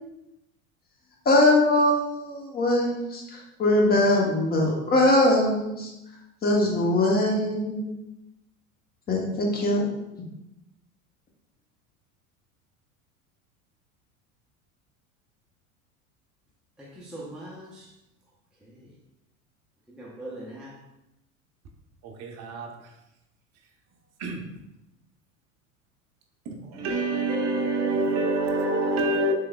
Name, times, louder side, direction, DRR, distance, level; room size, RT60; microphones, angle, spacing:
voice 1, 1.3-3.2 3.6-5.9 6.4-7.9 9.1-9.9, left 1 dB, 20° left, 0.8 m, -21 dB
voice 2, 16.8-17.9 18.6-18.9 19.9-20.7, right 1 dB, ahead, 0.5 m, -41 dB
voice 3, 22.2-22.7 24.2-24.4 26.7-29.3, right 2 dB, 40° right, 0.7 m, -26 dB
3.3 x 3.1 x 2.3 m
hypercardioid pair, 80°, 41 cm